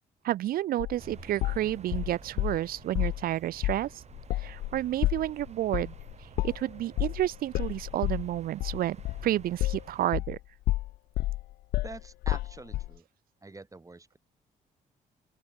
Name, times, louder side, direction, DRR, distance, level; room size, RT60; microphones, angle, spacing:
voice 1, 0.2-3.9 4.4-5.9 6.4-9.0 9.2-10.4, right 13 dB, 70° right, 0.6 m, -30 dB
sound 1, 0.8-2.6 2.9-3.2 3.6-3.8 4.1-10.4 10.7-12.9, left 16 dB, 85° left, 0.6 m, -30 dB
sound 2, 1.0-10.1, right 7 dB, 45° right, 1.8 m, -51 dB
voice 2, 11.8-13.0 13.4-14.2, right 3 dB, 20° right, 7.3 m, -45 dB
open air
cardioid pair, 80°, 16 cm